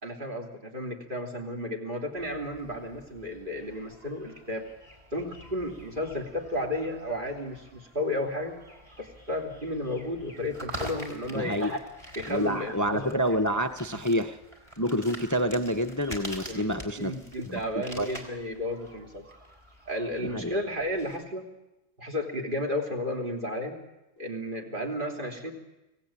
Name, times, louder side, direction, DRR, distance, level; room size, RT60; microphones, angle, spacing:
voice 1, 0.0-4.6 5.1-8.5 9.0-11.8 12.1-13.2 16.5-19.2 19.9-21.5 22.0-23.8 24.2-25.5, left 1 dB, 35° right, 1 dB, 3.3 m, -33 dB
sound 1, 2.2-21.2, equal, 20° right, 3.9 m, -46 dB
voice 2, 11.3-11.7 12.3-14.4 14.8-17.1 17.5-17.6 18.0-18.1 20.3-20.5, equal, 15° left, 9 dB, 0.6 m, -28 dB
24.5 x 17.0 x 8.9 m, 0.97 s
omnidirectional pair, 1.5 m